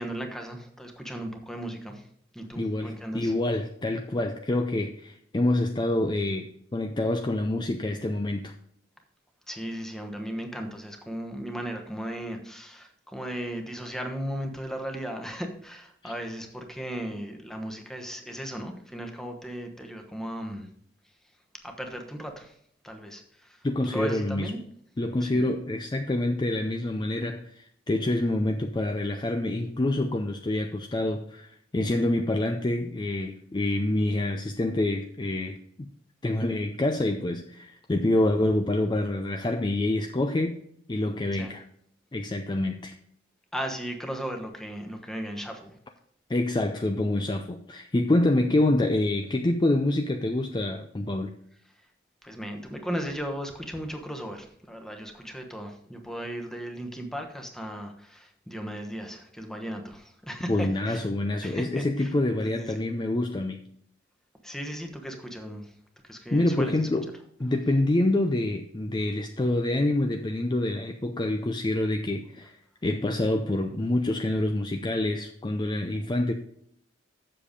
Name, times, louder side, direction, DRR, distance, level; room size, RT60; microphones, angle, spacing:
voice 1, 0.0-2.1 2.3-3.3 9.5-20.7 21.6-22.5 22.8-24.6 25.2-25.4 41.4-41.5 43.5-45.8 52.2-61.1 61.4-62.1 62.4-62.8 64.4-65.7 66.0-66.9, equal, 5° left, 4 dB, 1.1 m, -36 dB
voice 2, 2.5-8.5 16.0-16.1 23.6-24.5 25.0-35.9 36.2-40.6 40.9-41.6 42.1-42.9 46.3-51.3 60.5-63.6 66.3-67.1 67.4-72.6 72.8-76.3, left 1 dB, 25° left, 5 dB, 0.5 m, -27 dB
7.7 x 6.7 x 5.2 m, 0.68 s
head